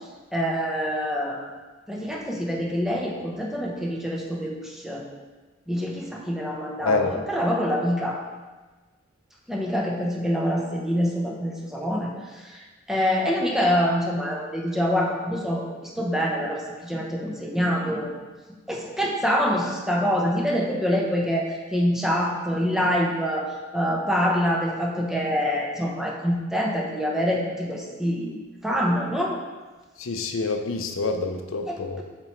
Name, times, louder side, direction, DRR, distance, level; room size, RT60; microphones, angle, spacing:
voice 1, 0.3-1.5 1.9-5.0 5.7-8.2 9.5-18.1 18.7-29.3 31.7-32.0, equal, ahead, -2 dB, 0.8 m, -26 dB
voice 2, 30.0-32.0, left 3 dB, 90° left, 6 dB, 0.6 m, -26 dB
7.5 x 4.5 x 3.1 m, 1.3 s
head